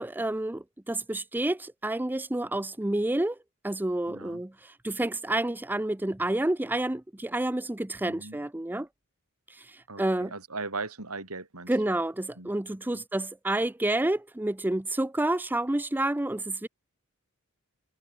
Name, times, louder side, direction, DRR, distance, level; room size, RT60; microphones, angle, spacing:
voice 1, 0.0-3.4 3.6-8.9 9.5-10.3 11.7-16.7, right 1 dB, 10° right, 0.5 m, -29 dB
voice 2, 4.1-4.4 8.1-8.4 9.9-11.9 12.4-13.0, right 3 dB, 80° right, 5.6 m, -39 dB
head